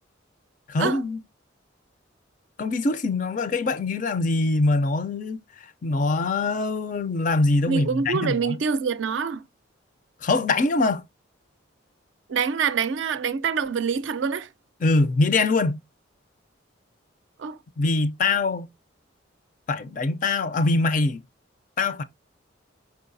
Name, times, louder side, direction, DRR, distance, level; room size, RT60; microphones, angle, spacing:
voice 1, 0.7-1.2 2.6-5.4 5.8-8.6 10.2-11.0 14.8-15.8 17.8-18.7 19.7-21.2 21.8-22.0, left 3 dB, 40° left, 0.4 m, -23 dB
voice 2, 7.7-9.4 12.3-14.5 17.4-17.6, right 6 dB, 65° right, 0.4 m, -25 dB
4.6 x 4.5 x 2.5 m
head